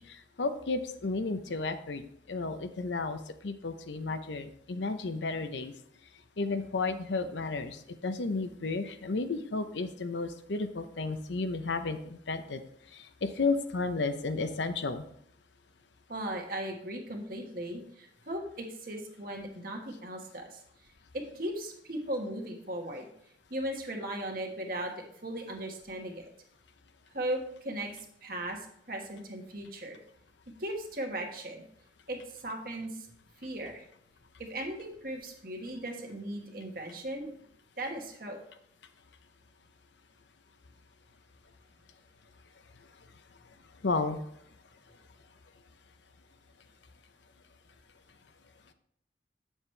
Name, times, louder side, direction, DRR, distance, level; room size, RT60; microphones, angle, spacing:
voice 1, 0.0-2.0 2.3-5.7 6.4-12.6 12.9-15.1 43.8-44.2, left 3 dB, 75° left, 9 dB, 0.7 m, -33 dB
voice 2, 16.1-20.6 21.1-23.0 23.5-24.9 25.2-26.2 27.1-27.9 28.2-28.6 28.9-30.0 30.6-31.6 32.1-33.1 33.4-33.8 34.4-37.3 37.8-38.4, right 1 dB, 50° right, 2 dB, 1.5 m, -37 dB
8.7 x 7.2 x 3.3 m, 0.70 s
head